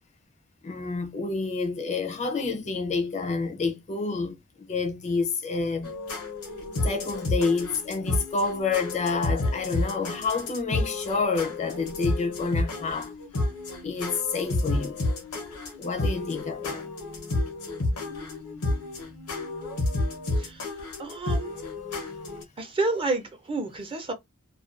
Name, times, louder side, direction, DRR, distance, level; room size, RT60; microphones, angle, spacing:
voice 1, 0.6-5.9 6.8-13.1 13.8-15.0 15.8-16.9, left 4 dB, 30° left, 0.4 m, -28 dB
sound 1, 5.8-22.4, left 2 dB, 85° left, 0.8 m, -30 dB
voice 2, 21.0-21.5 22.6-24.1, right 3 dB, 25° right, 0.5 m, -29 dB
2.4 x 2.2 x 2.4 m
head